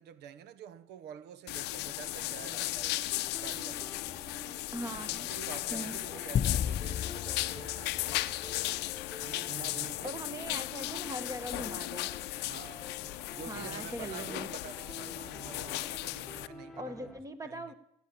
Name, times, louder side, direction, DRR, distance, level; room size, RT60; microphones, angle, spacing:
voice 1, 0.0-4.0 5.0-8.3 9.2-10.2 12.4-12.9 13.3-17.1 17.4-17.7, right 8 dB, 80° right, 1.0 m, -48 dB
sound 1, 1.5-16.5, left 18 dB, 90° left, 0.6 m, -36 dB
sound 2, 2.4-17.2, left 2 dB, ahead, 1.8 m, -50 dB
voice 2, 4.7-5.3 5.7-6.0 10.0-12.1 13.5-14.5 16.8-17.7, right 1 dB, 20° right, 1.6 m, -40 dB
sound 3, 6.3-9.0, left 9 dB, 40° left, 0.5 m, -34 dB
17.0 x 8.4 x 7.1 m
cardioid pair, 110°, 17 cm